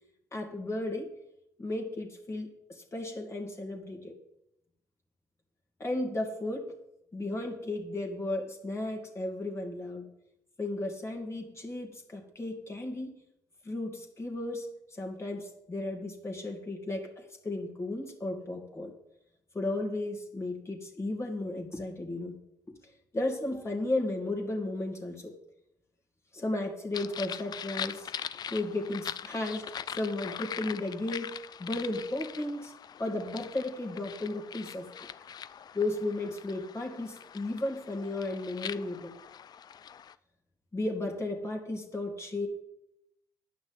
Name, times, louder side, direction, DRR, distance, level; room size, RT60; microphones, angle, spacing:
voice 1, 0.3-1.1 1.6-4.1 5.8-6.7 7.1-10.1 10.6-13.1 13.6-18.9 19.5-22.4 23.1-25.3 26.3-28.1 28.5-32.7 33.0-34.9 35.7-39.1 40.7-42.5, left 2 dB, 30° left, 1 dB, 2.4 m, -34 dB
sound 1, 26.9-40.1, left 8 dB, 50° left, 0.5 m, -42 dB
9.5 x 6.0 x 8.1 m, 0.82 s
hypercardioid pair, 60°, 9 cm